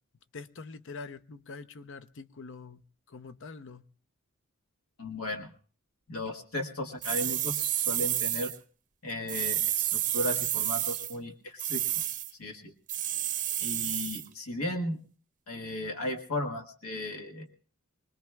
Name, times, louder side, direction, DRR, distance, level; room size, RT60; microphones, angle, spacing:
voice 1, 0.3-2.8 3.1-3.8, left 4 dB, 60° left, 12 dB, 0.7 m, -44 dB
voice 2, 5.0-5.5 6.1-8.5 9.0-12.0 12.4-12.7 13.6-15.0 15.5-17.5, left 1 dB, 85° left, 2 dB, 1.5 m, -35 dB
sound 1, 7.0-8.6 9.3-11.1 11.6-12.3 12.9-14.3, right 12 dB, 35° right, 0.6 m, -30 dB
25.0 x 20.0 x 2.3 m, 0.42 s
head